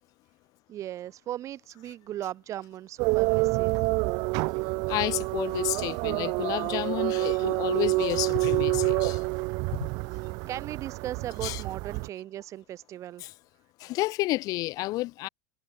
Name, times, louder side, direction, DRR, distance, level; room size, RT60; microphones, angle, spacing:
voice 1, 0.7-3.8 10.1-13.2, right 12 dB, 35° right, 1.7 m, -38 dB
sound 1, 3.0-12.1, right 28 dB, 55° right, 1.6 m, -28 dB
voice 2, 4.9-9.3 9.7-9.9 11.4-11.6 13.2-13.3 13.8-15.3, left 19 dB, 45° left, 0.7 m, -30 dB
supercardioid pair, 125°, 9 cm